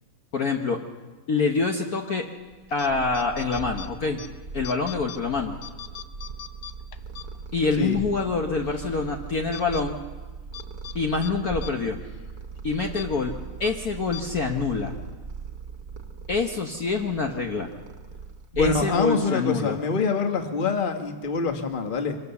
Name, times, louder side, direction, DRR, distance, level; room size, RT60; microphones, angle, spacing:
voice 1, 0.3-0.8 1.3-2.3 2.7-4.2 4.5-5.5 7.5-10.0 10.9-12.0 12.6-13.3 13.6-14.9 16.3-17.7 18.6-19.8, left 4 dB, 50° left, 2 dB, 1.4 m, -26 dB
Purr, 2.5-19.3, right 5 dB, 50° right, 1.6 m, -39 dB
sound 1, 2.7-2.9 3.1-4.3 4.6-5.2 5.6-7.7 8.1-8.2 8.6-9.0 9.5-9.8 10.5-11.0 11.2-11.3 11.6-11.7 12.0-12.2 12.9-13.1 13.6-13.7 14.1-14.2, left 11 dB, 85° left, 1.8 m, -40 dB
voice 2, 18.5-22.2, left 4 dB, 25° left, 5 dB, 1.4 m, -25 dB
24.5 x 16.5 x 7.0 m, 1.3 s
omnidirectional pair, 2.3 m